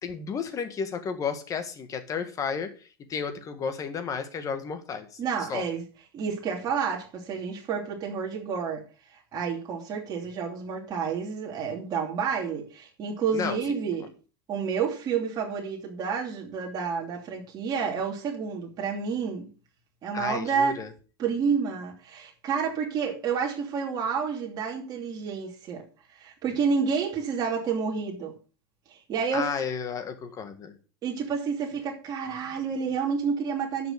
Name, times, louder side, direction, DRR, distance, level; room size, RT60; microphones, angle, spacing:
voice 1, 0.0-5.7 13.3-13.6 20.1-20.9 29.3-30.8, left 6 dB, 25° left, 1.7 m, -33 dB
voice 2, 5.2-5.8 6.1-8.9 9.3-14.1 14.5-19.5 20.0-20.8 21.2-25.8 26.2-28.3 28.9-29.5 31.0-33.9, right 6 dB, 30° right, 2.8 m, -29 dB
10.5 x 6.1 x 6.6 m
supercardioid pair, 150°, 13 cm